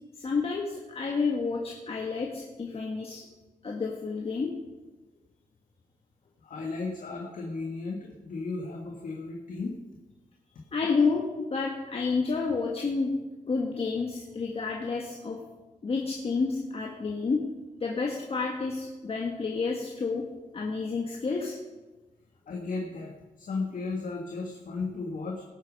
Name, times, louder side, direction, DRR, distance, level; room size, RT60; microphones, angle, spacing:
voice 1, 0.2-3.3 3.6-4.5 10.7-13.1 13.5-15.4 15.8-17.4 17.8-20.3 20.5-21.5, left 4 dB, 45° left, -1 dB, 1.5 m, -30 dB
voice 2, 6.4-9.8 22.5-23.1 23.4-25.4, left 3 dB, 70° left, -1 dB, 1.7 m, -35 dB
19.0 x 8.3 x 5.2 m, 1.1 s
wide cardioid pair, 150°, 14 cm